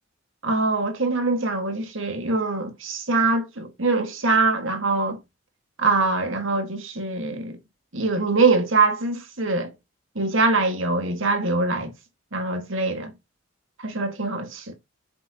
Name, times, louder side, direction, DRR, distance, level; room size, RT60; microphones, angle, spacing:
voice 1, 0.4-5.2 5.8-7.6 7.9-9.7 10.1-11.9 12.3-13.1 13.8-14.7, right 3 dB, 70° right, 1.9 m, -23 dB
7.6 x 7.2 x 2.9 m
head